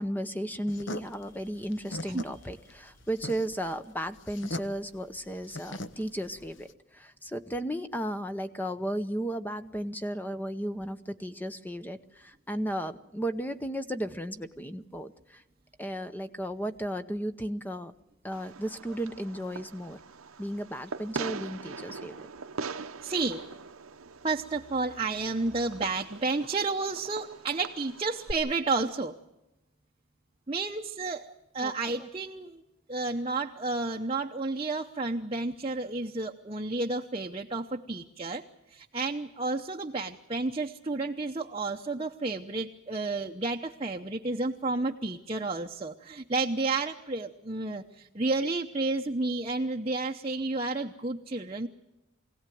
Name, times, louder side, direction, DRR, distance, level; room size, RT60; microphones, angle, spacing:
voice 1, 0.0-6.7 6.9-15.4 15.8-17.9 18.2-20.0 20.4-22.2 31.6-31.7 32.0-32.1, equal, 10° left, 10 dB, 0.8 m, -34 dB
sound 1, 0.7-6.7, left 1 dB, 55° left, 1.1 m, -41 dB
Fireworks, 18.3-28.3, right 4 dB, 80° right, 0.9 m, -42 dB
voice 2, 23.0-23.6 24.2-29.2 30.5-32.6 32.9-38.4 38.7-51.7, right 3 dB, 25° right, 2 dB, 0.8 m, -31 dB
24.0 x 17.0 x 9.3 m, 0.96 s
head